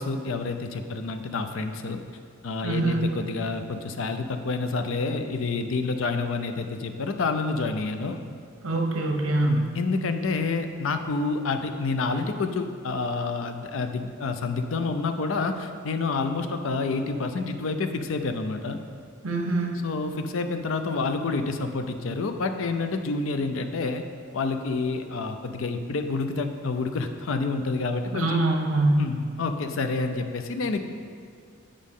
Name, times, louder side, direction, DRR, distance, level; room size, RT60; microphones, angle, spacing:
voice 1, 0.0-2.0 2.4-8.2 9.5-18.8 19.8-24.0 24.3-28.4 29.0-30.8, left 3 dB, 70° left, 7 dB, 0.5 m, -28 dB
voice 2, 2.6-3.1 8.6-9.7 19.2-19.8 28.1-29.0, right 2 dB, 75° right, 1 dB, 0.8 m, -24 dB
8.4 x 5.0 x 3.6 m, 2.2 s
head